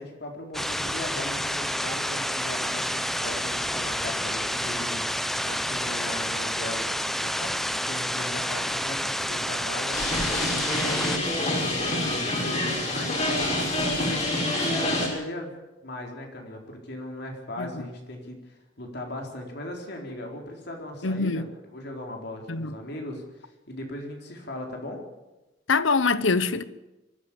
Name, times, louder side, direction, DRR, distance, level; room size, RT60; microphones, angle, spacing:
voice 1, 0.0-6.9 7.2-13.2 13.5-15.6 15.8-21.5 21.7-25.0, left 1 dB, 60° left, 4.2 m, -38 dB
sound 1, 0.5-11.2, equal, ahead, 0.7 m, -29 dB
sound 2, 9.9-15.1, left 1 dB, 35° left, 6.0 m, -27 dB
voice 2, 21.0-21.5 22.5-22.7 25.7-26.6, left 4 dB, 85° left, 1.0 m, -24 dB
23.5 x 14.0 x 8.6 m
head